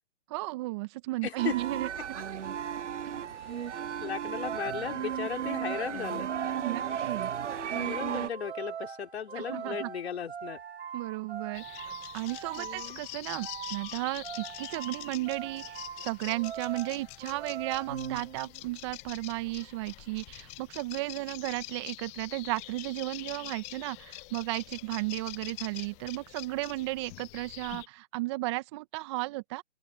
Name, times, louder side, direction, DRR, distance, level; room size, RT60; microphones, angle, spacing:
voice 1, 0.3-1.9 3.1-3.2 6.6-7.3 9.3-9.9 10.9-29.6, right 21 dB, 25° right, 1.1 m, -34 dB
voice 2, 1.2-1.5 3.4-6.3 7.6-10.6 12.6-13.0, left 7 dB, 60° left, 3.8 m, -37 dB
sound 1, 1.4-8.3, right 9 dB, 80° right, 0.7 m, -34 dB
sound 2, 4.2-18.8, right 7 dB, 65° right, 3.9 m, -42 dB
sound 3, 11.5-27.9, left 23 dB, 20° left, 1.2 m, -45 dB
open air
hypercardioid pair, 145°, 35 cm